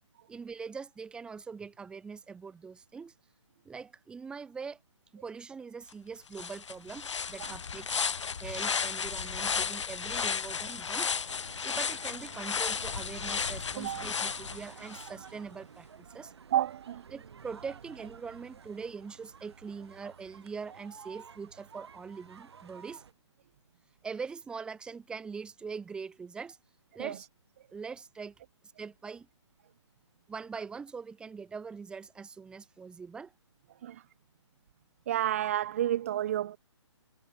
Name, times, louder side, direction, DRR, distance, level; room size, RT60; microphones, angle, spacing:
voice 1, 0.3-3.1 3.6-4.8 5.1-8.0 8.4-11.1 11.6-16.3 17.1-23.0 24.0-26.6 26.9-27.3 27.7-28.3 28.8-29.3 30.3-33.3, right 5 dB, 5° right, 3.0 m, -42 dB
sound 1, 5.9-6.0 6.3-15.1, left 6 dB, 70° left, 1.3 m, -34 dB
sound 2, 11.3-23.1, right 6 dB, 60° right, 5.5 m, -51 dB
voice 2, 16.5-17.0 27.0-27.2 33.8-34.0 35.1-36.6, right 12 dB, 25° right, 0.6 m, -30 dB
hypercardioid pair, 165°, 16 cm